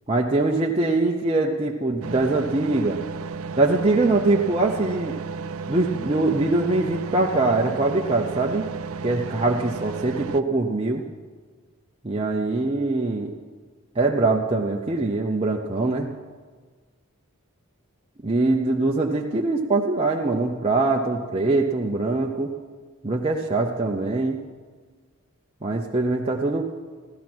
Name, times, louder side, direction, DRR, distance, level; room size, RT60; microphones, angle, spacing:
voice 1, 0.1-3.0 3.6-5.1 5.7-8.7 9.0-11.0 12.0-13.3 14.0-16.1 18.2-22.5 23.0-24.4 25.6-26.7, right 2 dB, 25° right, -1 dB, 0.7 m, -23 dB
sound 1, 2.0-10.4, right 5 dB, 70° right, 0.5 m, -33 dB
16.0 x 12.5 x 6.1 m, 1.5 s
head